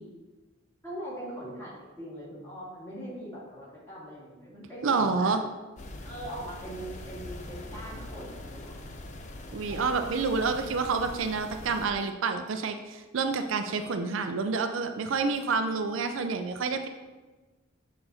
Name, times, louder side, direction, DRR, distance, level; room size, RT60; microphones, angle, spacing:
voice 1, 0.8-5.4 6.0-8.8 9.7-9.8, right 1 dB, 15° left, -8 dB, 2.2 m, -41 dB
voice 2, 4.8-5.4 9.5-16.9, right 4 dB, 70° right, 6 dB, 0.5 m, -28 dB
sound 1, 5.8-11.9, left 1 dB, 35° left, 0.5 m, -42 dB
6.9 x 4.0 x 4.1 m, 1.2 s
head